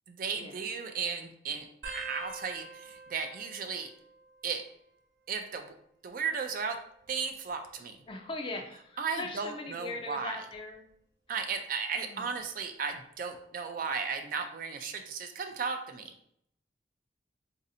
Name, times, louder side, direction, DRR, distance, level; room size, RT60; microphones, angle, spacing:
voice 1, 0.1-3.9 4.4-4.6 5.3-5.7 6.0-6.8 7.1-8.0 9.0-10.4 11.3-16.1, right 5 dB, 45° right, 6 dB, 0.3 m, -35 dB
sound 1, 1.8-5.0 5.3-5.9 6.9-8.4 9.0-9.3 10.5-10.9 12.4-12.5, right 3 dB, 65° right, 1.0 m, -48 dB
voice 2, 8.1-10.8 12.0-12.3, left 2 dB, 25° left, 3 dB, 0.4 m, -40 dB
4.0 x 2.6 x 2.7 m, 0.70 s
head